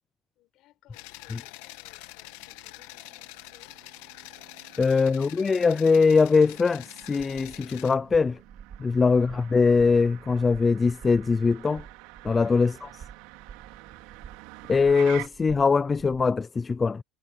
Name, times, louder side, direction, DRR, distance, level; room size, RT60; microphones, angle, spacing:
voice 1, 0.4-3.8 9.1-9.4, left 16 dB, 45° left, 5.9 m, -61 dB
sound 1, 0.9-7.9, left 19 dB, 75° left, 1.8 m, -45 dB
Motor vehicle (road), 2.2-15.3, right 21 dB, 70° right, 2.9 m, -48 dB
voice 2, 4.8-8.4 8.8-11.9 12.2-12.9 14.7-17.0, left 4 dB, 15° left, 0.4 m, -22 dB
sound 2, 7.0-16.4, right 7 dB, 25° right, 1.3 m, -49 dB
cardioid pair, 170°, 0 cm